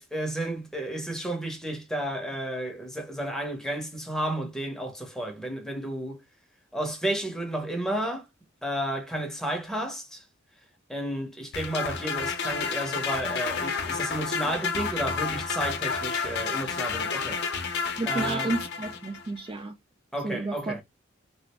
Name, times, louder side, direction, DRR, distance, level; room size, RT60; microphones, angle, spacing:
voice 1, 0.0-6.2 6.7-8.3 8.6-10.2 10.9-17.4 18.1-18.5 20.1-20.8, right 1 dB, ahead, 0.8 m, -32 dB
sound 1, 11.5-19.3, left 5 dB, 55° left, 0.7 m, -30 dB
voice 2, 18.0-19.7 20.2-20.8, right 2 dB, 25° right, 0.3 m, -31 dB
3.1 x 2.5 x 2.9 m
head